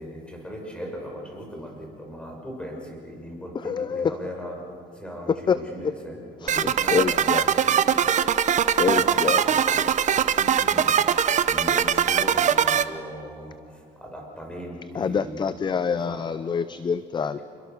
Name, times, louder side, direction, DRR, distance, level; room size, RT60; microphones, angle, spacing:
voice 1, 0.0-8.1 8.9-11.1 11.5-15.5 15.9-16.3 17.2-17.4, equal, 5° left, 1 dB, 6.2 m, -38 dB
voice 2, 3.6-4.1 5.5-5.6 6.4-7.4 8.8-9.4 14.9-17.4, left 6 dB, 25° left, 14 dB, 0.6 m, -26 dB
sound 1, 6.5-12.8, right 9 dB, 45° right, 0.9 m, -21 dB
28.0 x 22.0 x 6.7 m, 2.4 s
cardioid pair, 110°, 17 cm